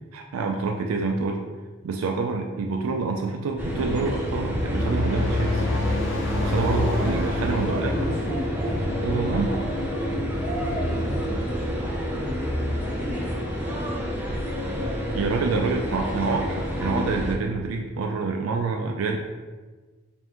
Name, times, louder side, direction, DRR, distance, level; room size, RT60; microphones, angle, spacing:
voice 1, 0.1-1.4 1.8-5.7 6.4-7.9 9.0-9.5 15.1-19.2, right 4 dB, 85° right, 2 dB, 0.3 m, -27 dB
sound 1, 3.6-17.3, equal, 10° right, 0.5 m, -29 dB
sound 2, 4.0-10.6, left 2 dB, 60° left, 0.7 m, -29 dB
voice 2, 6.3-14.0 14.6-15.6, equal, 35° right, -8 dB, 1.4 m, -35 dB
5.2 x 2.6 x 2.9 m, 1.4 s
head